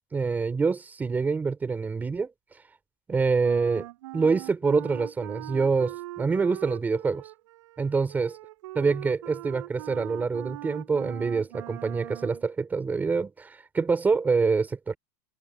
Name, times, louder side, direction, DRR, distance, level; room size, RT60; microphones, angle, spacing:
voice 1, 0.1-2.3 3.1-3.9 4.1-7.2 7.8-8.3 8.7-15.0, right 4 dB, 10° right, 4.1 m, -26 dB
Wind instrument woodwind instrument, 3.4-12.4, right 18 dB, 90° right, 7.6 m, -41 dB
supercardioid pair, 175°, 15 cm